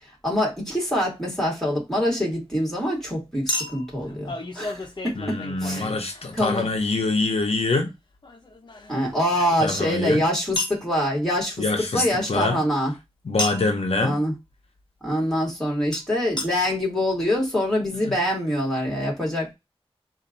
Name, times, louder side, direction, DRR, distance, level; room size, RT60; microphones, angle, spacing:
voice 1, 0.2-5.9 6.3-6.7 8.9-11.6 11.9-12.9 14.0-14.3 15.0-19.5, equal, 5° left, 2.5 m, -25 dB
Chink clink, 0.7-0.8 3.5-6.7 8.2-9.9 10.6-10.8 13.4-13.8 15.9-16.0 16.4-16.5 17.1-17.2 17.4-17.5, left 1 dB, 45° left, 0.9 m, -32 dB
voice 2, 5.2-7.9 9.6-10.2 11.6-12.6 13.2-14.2 18.1-18.2, left 3 dB, 80° left, 0.8 m, -25 dB
4.2 x 2.6 x 3.9 m
wide cardioid pair, 80°, 10 cm